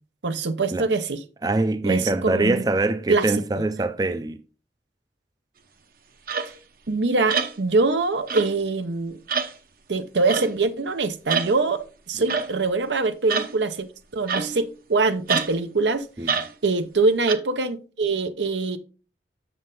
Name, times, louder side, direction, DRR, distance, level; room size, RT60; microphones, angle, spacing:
voice 1, 0.2-1.2 1.8-2.6 3.1-3.3 6.9-9.2 9.9-13.8 14.1-16.3 16.6-18.8, right 3 dB, 80° right, 0.8 m, -24 dB
voice 2, 1.4-4.4 12.2-12.3 16.2-16.4, right 2 dB, 20° right, 0.4 m, -24 dB
sound 1, 6.3-6.5 7.3-7.6 8.3-8.6 9.3-9.5 10.3-10.5 11.3-11.5 12.3-12.5 13.3-13.5 14.3-14.7 15.3-15.5 16.3-16.5 17.3-17.4, right 5 dB, 55° right, 0.8 m, -26 dB
7.8 x 6.5 x 3.8 m
head